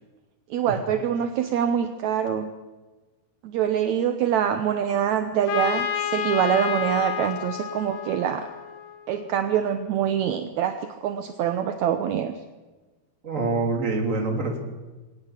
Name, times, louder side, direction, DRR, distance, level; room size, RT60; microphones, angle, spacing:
voice 1, 0.5-2.5 3.4-8.5 9.1-12.3, right 9 dB, 70° right, 8 dB, 1.8 m, -25 dB
Trumpet, 5.5-9.2, left 9 dB, 70° left, 3.0 m, -30 dB
voice 2, 13.2-14.6, right 3 dB, 20° right, 2 dB, 3.2 m, -25 dB
23.0 x 18.5 x 7.4 m, 1.2 s
omnidirectional pair, 4.5 m